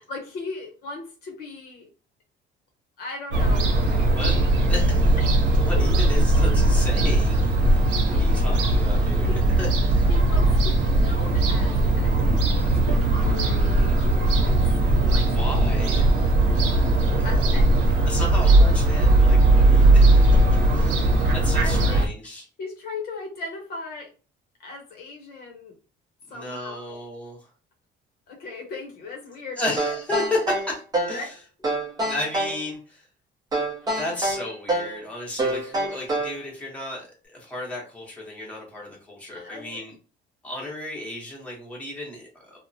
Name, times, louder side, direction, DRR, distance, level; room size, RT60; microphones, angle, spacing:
voice 1, 0.1-1.9 3.0-4.5 5.2-5.3 5.8-5.9 8.1-8.5 9.3-9.4 10.1-15.3 15.6-16.1 17.2-17.8 21.6-21.8 22.6-24.1 24.6-25.8 26.3-27.0 28.3-29.7 31.1-31.3 39.3-39.9, left 3 dB, 55° left, 2 dB, 0.8 m, -38 dB
Fowl / Gull seagull, 3.3-22.1, right 2 dB, 80° right, 0.8 m, -19 dB
voice 2, 4.7-5.2 5.5-9.3 9.6-10.1 15.3-16.0 17.2-17.3 18.0-20.2 20.7-22.5 26.3-27.5 29.6-30.8 31.1-31.3 32.0-33.0 33.9-39.9 40.4-42.6, left 1 dB, 5° left, -3 dB, 0.9 m, -33 dB
sound 1, 29.8-31.2 31.6-32.6 33.5-35.0 35.4-36.4, right 1 dB, 20° right, 0.6 m, -26 dB
2.9 x 2.1 x 2.6 m, 0.35 s
cardioid pair, 160°, 19 cm